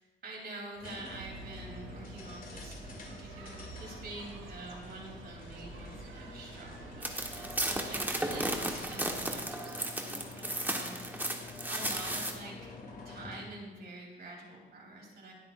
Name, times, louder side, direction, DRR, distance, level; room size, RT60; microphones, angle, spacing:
voice 1, 0.2-11.3 11.7-12.7 13.0-15.3, right 2 dB, 55° right, -1 dB, 3.7 m, -47 dB
sound 1, 0.7-13.6, left 3 dB, 45° left, 2.5 m, -48 dB
sound 2, 1.1-9.3, right 3 dB, 80° right, 1.6 m, -49 dB
sound 3, 7.0-12.3, right 1 dB, 10° right, 1.5 m, -34 dB
20.5 x 7.9 x 2.6 m, 1.3 s
cardioid pair, 90°, 20 cm